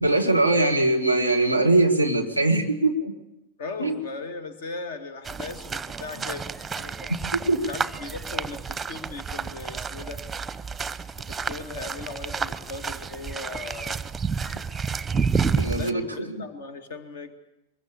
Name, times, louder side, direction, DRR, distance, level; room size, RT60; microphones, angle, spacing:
voice 1, 0.0-3.2 3.8-4.0 7.3-7.6 15.6-16.3, right 2 dB, 90° left, 6 dB, 2.3 m, -22 dB
voice 2, 3.6-6.4 6.8-7.1 7.5-10.2 11.2-14.1 15.7-17.3, left 3 dB, 55° left, 10 dB, 2.3 m, -38 dB
sound 1, 5.2-15.9, right 5 dB, 10° right, 0.9 m, -30 dB
23.5 x 22.0 x 8.5 m, 0.94 s
figure-of-eight pair, 90°, 0 cm